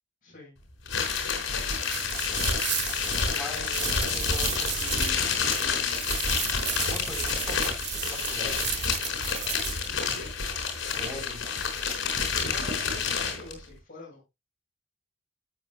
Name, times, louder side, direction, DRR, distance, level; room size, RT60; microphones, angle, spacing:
voice 1, 0.2-0.6 3.3-4.4 10.0-10.3 12.4-14.2, left 2 dB, 40° left, 6.2 m, -45 dB
sound 1, 0.9-13.5, left 5 dB, 60° left, 4.5 m, -29 dB
sound 2, 1.8-9.9, right 12 dB, 55° right, 1.0 m, -34 dB
voice 2, 3.3-6.0 6.8-8.8 11.0-11.5, left 1 dB, 5° right, 3.9 m, -42 dB
13.5 x 8.4 x 2.3 m
head